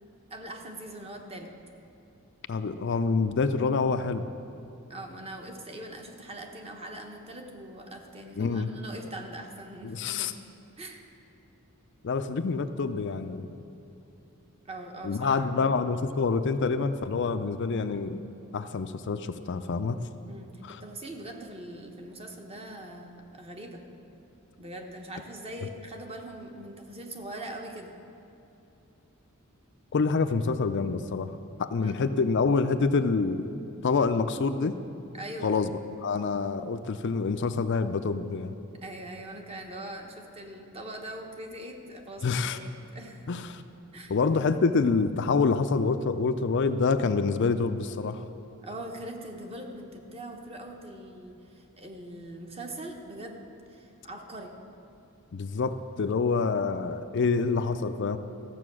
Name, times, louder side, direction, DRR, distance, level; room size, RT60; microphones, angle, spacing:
voice 1, 0.3-1.5 4.9-10.3 10.8-11.0 14.7-15.7 20.2-23.8 24.6-27.9 31.8-32.0 35.1-35.5 38.8-43.3 43.9-44.2 48.6-53.4 53.7-54.5, right 1 dB, 25° right, 2 dB, 1.1 m, -42 dB
voice 2, 2.5-4.3 8.4-8.7 9.8-10.3 12.0-13.6 15.0-18.2 18.5-20.0 20.6-20.8 29.9-31.3 31.6-33.5 33.8-34.8 35.4-35.7 36.0-38.5 42.2-42.6 43.3-43.6 44.1-48.2 55.3-58.2, left 4 dB, 55° left, 10 dB, 0.4 m, -27 dB
14.5 x 7.6 x 6.2 m, 2.9 s
head